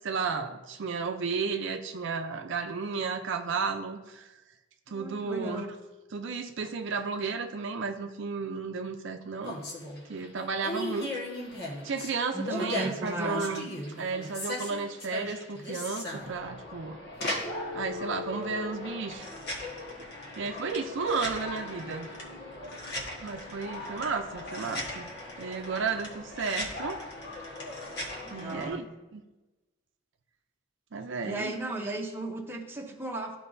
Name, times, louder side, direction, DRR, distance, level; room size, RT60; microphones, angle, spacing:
voice 1, 0.0-4.3 4.9-5.8 6.1-9.6 10.1-11.1 11.8-13.7 14.0-17.0 17.7-19.3 20.4-22.1 23.2-25.1 25.4-27.0 28.3-28.9 29.1-29.2 30.9-31.6, right 4 dB, 65° right, 5 dB, 0.5 m, -33 dB
voice 2, 4.9-5.7 12.3-13.5 28.2-28.9 31.2-33.4, right 2 dB, 10° right, 0 dB, 0.9 m, -36 dB
sound 1, 9.4-28.7, left 2 dB, 55° left, 1.5 m, -38 dB
13.0 x 4.7 x 2.7 m, 1.1 s
head